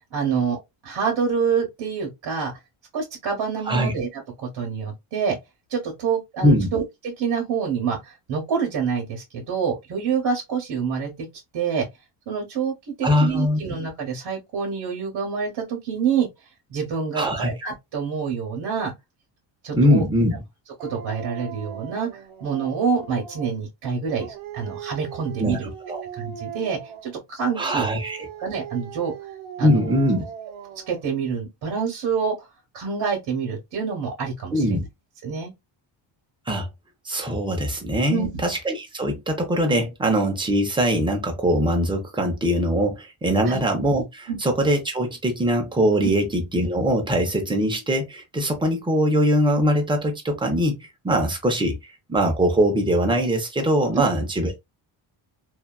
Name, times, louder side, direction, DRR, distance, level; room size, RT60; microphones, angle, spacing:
voice 1, 0.1-2.5 2.9-5.4 5.7-11.3 11.5-11.9 12.3-16.3 16.7-18.9 19.6-20.1 20.8-25.7 26.1-27.9 28.4-29.1 29.6-29.9 30.9-32.3 32.7-34.9 35.2-35.5 38.1-38.4 43.4-43.6 44.3-44.4 46.0-46.1 54.0-54.1, right 6 dB, 55° right, 1.0 m, -27 dB
voice 2, 13.0-13.6 17.1-17.5 19.7-20.4 25.4-25.6 25.9-26.0 27.6-28.3 29.6-30.2 34.5-34.8 36.5-36.7 37.0-50.8 51.0-54.6, equal, 10° right, 0.5 m, -22 dB
Dog, 20.8-23.6 24.0-27.1 27.6-31.1, right 8 dB, 85° right, 0.7 m, -38 dB
2.7 x 2.3 x 2.2 m
cardioid pair, 155°, 46 cm